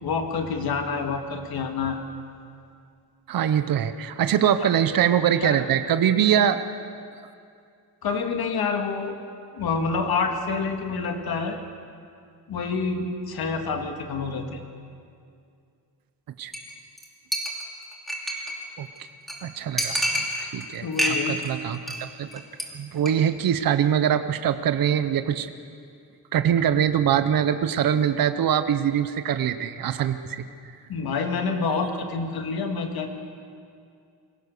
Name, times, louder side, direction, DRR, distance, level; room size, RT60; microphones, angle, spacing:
voice 1, 0.0-2.0 4.6-4.7 5.4-5.6 8.0-9.2 9.5-11.6 12.5-14.6 20.8-21.4 30.9-33.1, left 4 dB, 65° left, 4 dB, 2.0 m, -27 dB
voice 2, 3.3-6.6 16.4-16.5 18.8-18.9 19.4-22.4 22.7-25.5 26.3-30.4, right 9 dB, 60° right, 10 dB, 0.9 m, -23 dB
Chink clink, 16.5-16.7 17.0-17.1 17.3-18.6 19.0-19.1 19.3-19.4 19.8-20.6 20.9-21.5 21.7-22.0 22.3-22.6 23.0-23.1, equal, ahead, 2.7 m, -27 dB
22.5 x 17.5 x 6.6 m, 2.4 s
cardioid pair, 140°, 40 cm